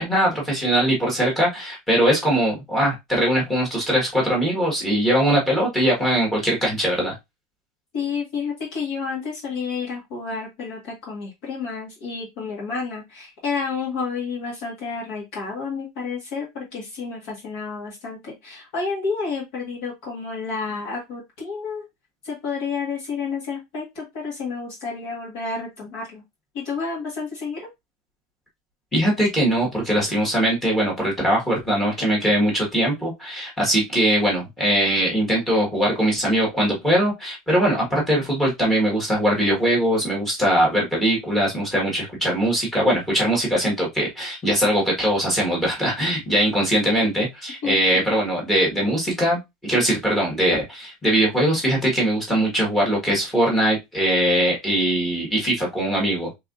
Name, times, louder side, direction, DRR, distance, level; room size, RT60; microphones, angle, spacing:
voice 1, 0.0-7.1 28.9-56.4, right 1 dB, 5° left, -3 dB, 1.6 m, -21 dB
voice 2, 7.9-21.8 22.2-26.2 26.5-27.7 47.6-48.1, left 5 dB, 45° left, -3 dB, 1.8 m, -30 dB
4.7 x 3.6 x 2.5 m, 0.20 s
supercardioid pair, 180°, 3 cm